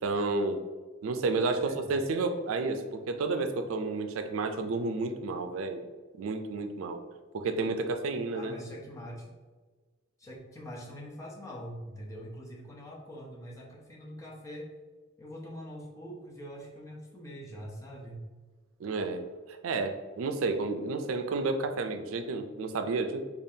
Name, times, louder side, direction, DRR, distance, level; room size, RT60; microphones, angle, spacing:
voice 1, 0.0-0.6 1.0-5.8 6.2-7.0 7.3-8.5 18.8-19.2 19.5-23.2, right 3 dB, 90° right, 7 dB, 0.4 m, -31 dB
voice 2, 1.6-1.9 8.3-9.3 10.2-14.7 15.2-18.3, equal, 15° left, -3 dB, 0.6 m, -43 dB
5.0 x 2.4 x 2.7 m, 1.3 s
head